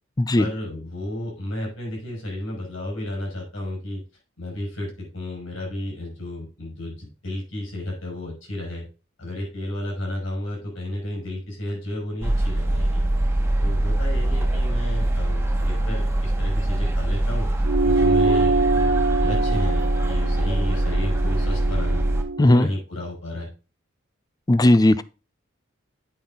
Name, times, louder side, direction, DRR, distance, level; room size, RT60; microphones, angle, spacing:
voice 1, 0.4-4.0 4.4-8.9 9.2-13.0 13.6-17.5 17.8-22.0 22.4-23.5, left 1 dB, 75° left, 5.3 m, -32 dB
sound 1, 12.2-22.2, right 1 dB, 15° right, 1.3 m, -23 dB
sound 2, 17.6-22.4, right 3 dB, 50° right, 0.5 m, -24 dB
voice 2, 24.5-25.0, left 1 dB, 20° left, 0.4 m, -16 dB
8.8 x 5.6 x 3.8 m
head